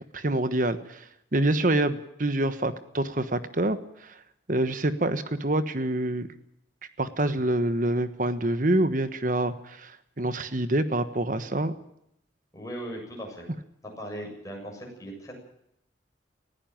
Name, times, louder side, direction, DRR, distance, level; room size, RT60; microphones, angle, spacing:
voice 1, 0.1-4.2 4.5-6.3 7.0-11.7, right 1 dB, 45° right, 11 dB, 1.3 m, -26 dB
voice 2, 12.5-13.5 14.0-15.4, equal, 20° left, 0 dB, 7.6 m, -38 dB
20.0 x 15.5 x 8.9 m, 0.78 s
head